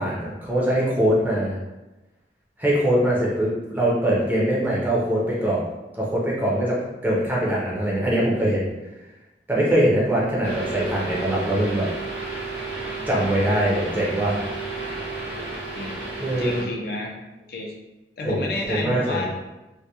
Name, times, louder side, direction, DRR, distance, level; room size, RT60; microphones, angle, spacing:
voice 1, 0.0-1.5 2.6-5.6 6.0-8.7 9.5-11.9 13.1-14.4 16.2-16.6 18.2-19.3, right 1 dB, 10° right, -6 dB, 0.5 m, -22 dB
sound 1, 10.4-16.6, right 3 dB, 65° right, 0.7 m, -32 dB
voice 2, 16.3-17.1 17.4-17.7 18.2-19.3, left 2 dB, 55° left, -1 dB, 0.4 m, -30 dB
2.2 x 2.1 x 2.8 m, 1.1 s
head